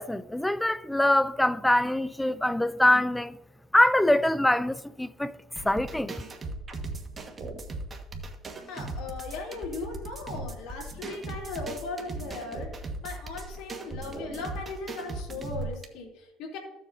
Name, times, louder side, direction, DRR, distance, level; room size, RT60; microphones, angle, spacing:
voice 1, 0.0-3.4 3.7-5.3 5.6-6.2, left 1 dB, 5° left, 0.4 m, -24 dB
sound 1, 5.6-15.8, right 2 dB, 30° right, 1.4 m, -38 dB
voice 2, 8.7-16.6, left 3 dB, 70° left, 3.0 m, -38 dB
15.0 x 7.4 x 2.7 m
supercardioid pair, 100°, 0 cm